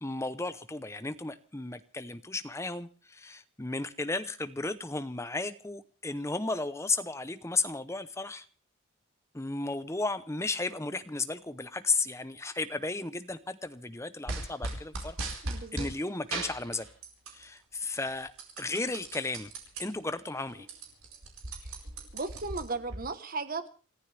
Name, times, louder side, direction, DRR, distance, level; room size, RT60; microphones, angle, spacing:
voice 1, 0.0-8.5 9.3-15.2 15.7-16.9 17.3-18.3 18.6-19.5 19.8-20.7, left 3 dB, 15° left, 12 dB, 0.7 m, -34 dB
sound 1, 14.3-15.9 16.3-17.4 17.8-19.8 20.3-20.4 20.6-23.0, right 2 dB, 85° right, 4.7 m, -37 dB
voice 2, 15.4-15.9 22.1-23.7, right 3 dB, 40° right, 11 dB, 1.2 m, -36 dB
27.5 x 14.5 x 3.4 m, 0.36 s
head